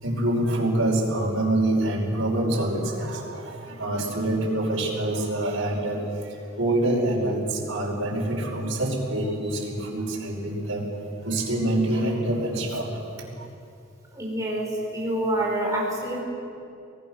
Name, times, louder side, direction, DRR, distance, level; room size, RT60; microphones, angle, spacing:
voice 1, 0.0-10.9 11.2-12.9 13.2-13.5, right 1 dB, 90° right, -3 dB, 5.4 m, -26 dB
voice 2, 14.1-16.2, right 1 dB, 15° right, -3 dB, 4.9 m, -27 dB
24.5 x 18.5 x 6.4 m, 2.6 s
head